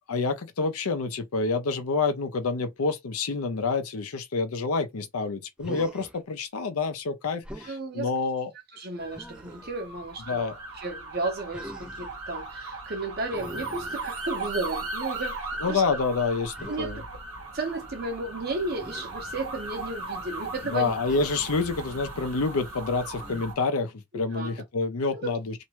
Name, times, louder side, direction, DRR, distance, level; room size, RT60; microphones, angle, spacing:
voice 1, 0.1-8.5 10.3-10.5 15.6-17.0 20.6-25.5, left 4 dB, 80° left, 0.6 m, -28 dB
Human voice, 5.6-6.2 7.4-7.8 9.1-9.8 11.5-12.2 13.3-14.5 16.5-16.8 18.8-19.1 21.1-21.6 23.2-23.7, equal, 5° right, 0.3 m, -43 dB
voice 2, 7.6-8.1 8.7-15.4 15.7-15.8 16.7-17.0 17.5-20.9 24.3-24.6 25.1-25.3, right 2 dB, 45° right, 0.8 m, -33 dB
sound 1, 9.0-23.5, right 2 dB, 75° right, 1.1 m, -37 dB
2.6 x 2.2 x 2.9 m
head